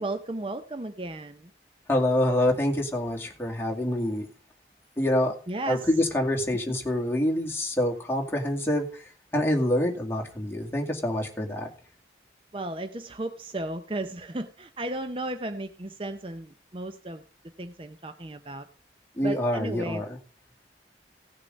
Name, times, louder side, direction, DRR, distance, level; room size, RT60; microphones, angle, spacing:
voice 1, 0.0-1.5 5.5-5.9 6.7-6.8 12.5-17.2 17.6-18.7 19.2-20.0, right 2 dB, 30° right, 9 dB, 0.7 m, -34 dB
voice 2, 1.9-4.3 5.0-5.3 5.7-9.0 9.3-11.7 19.2-20.2, left 1 dB, 15° left, -1 dB, 2.2 m, -26 dB
16.5 x 6.6 x 5.2 m, 0.39 s
head